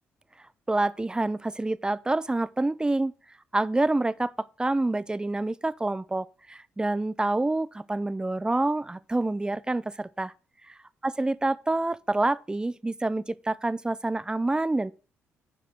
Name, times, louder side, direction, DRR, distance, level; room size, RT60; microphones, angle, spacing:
voice 1, 0.7-3.1 3.5-10.3 10.7-10.8 11.0-14.9, right 2 dB, 15° right, 0.5 m, -27 dB
7.6 x 5.0 x 6.4 m
hypercardioid pair, 50°, 6 cm